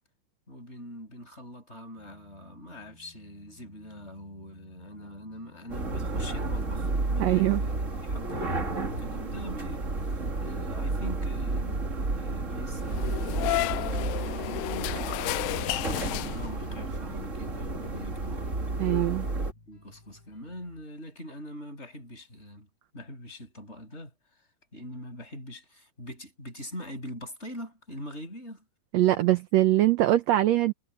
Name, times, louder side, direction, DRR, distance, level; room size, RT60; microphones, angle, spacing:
voice 1, 0.5-7.7 8.0-9.9 10.4-18.5 19.7-22.7 22.9-24.1 24.7-28.6, equal, 15° left, 7.8 m, -43 dB
sound 1, 2.0-20.9, left 3 dB, 75° left, 9.9 m, -58 dB
sound 2, 5.7-19.5, right 3 dB, 25° right, 2.0 m, -31 dB
voice 2, 7.2-7.6 18.8-19.3 28.9-30.7, right 15 dB, 75° right, 1.6 m, -22 dB
sound 3, 12.9-16.8, left 20 dB, 90° left, 2.3 m, -32 dB
omnidirectional pair, 3.9 m